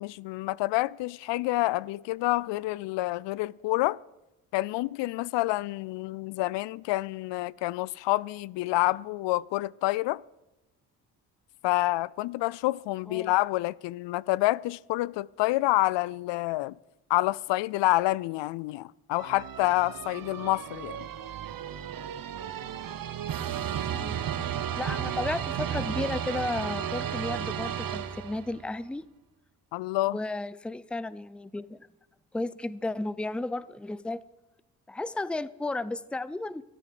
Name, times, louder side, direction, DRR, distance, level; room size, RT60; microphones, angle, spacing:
voice 1, 0.0-4.0 4.5-10.2 11.6-16.8 17.1-21.1 29.7-30.2, left 18 dB, 65° left, 0.6 m, -28 dB
sound 1, 19.1-28.6, right 9 dB, 45° right, 1.0 m, -34 dB
voice 2, 24.7-29.1 30.1-31.9 32.3-34.2 34.9-36.6, left 2 dB, ahead, 0.6 m, -33 dB
13.5 x 12.0 x 6.8 m
hypercardioid pair, 45°, 47 cm